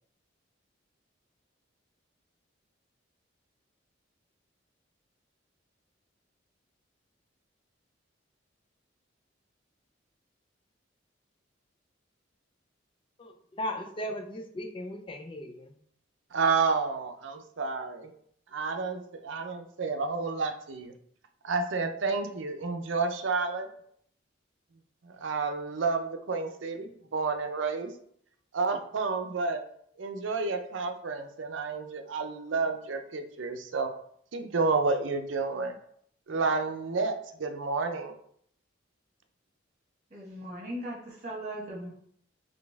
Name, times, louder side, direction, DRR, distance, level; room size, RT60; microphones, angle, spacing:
voice 1, 13.2-15.8, equal, 25° left, 4 dB, 0.4 m, -37 dB
voice 2, 16.3-18.1 18.5-20.9 21.4-23.7 25.0-27.9 28.5-29.6 30.0-33.9 34.3-35.7 36.3-38.1, right 4 dB, 75° right, 7 dB, 0.5 m, -30 dB
voice 3, 40.1-41.9, right 1 dB, 35° right, -3 dB, 1.3 m, -38 dB
4.1 x 3.3 x 3.4 m, 0.65 s
head